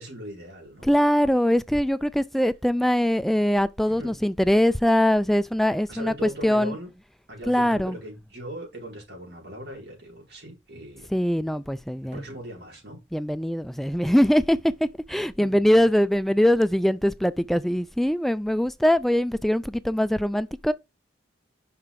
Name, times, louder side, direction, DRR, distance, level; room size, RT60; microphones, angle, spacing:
voice 1, 0.0-0.9 3.8-4.1 5.9-6.9 7.3-11.1 12.1-13.0 15.4-15.5, equal, 60° right, 4.7 m, -39 dB
voice 2, 0.8-6.7 7.5-8.0 11.1-12.2 13.1-14.6 15.1-20.7, equal, ahead, 0.3 m, -22 dB
5.9 x 5.7 x 4.7 m
head